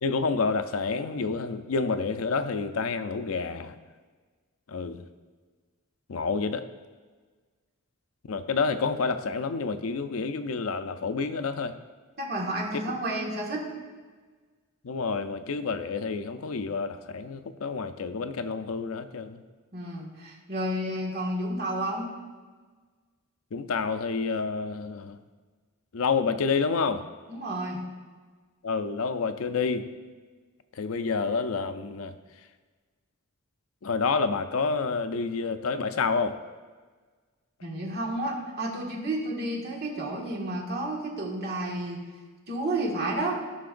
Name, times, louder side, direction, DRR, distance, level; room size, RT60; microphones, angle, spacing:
voice 1, 0.0-3.8 4.7-5.0 6.1-6.6 8.3-11.7 14.8-19.4 23.5-25.2 25.9-27.0 28.6-29.9 30.8-32.1 33.8-36.4, left 4 dB, 75° left, 10 dB, 0.5 m, -28 dB
voice 2, 12.2-13.7 19.7-22.1 27.3-27.8 37.6-42.0 42.5-43.4, right 1 dB, 50° right, -2 dB, 1.8 m, -31 dB
15.5 x 5.8 x 2.6 m, 1.4 s
head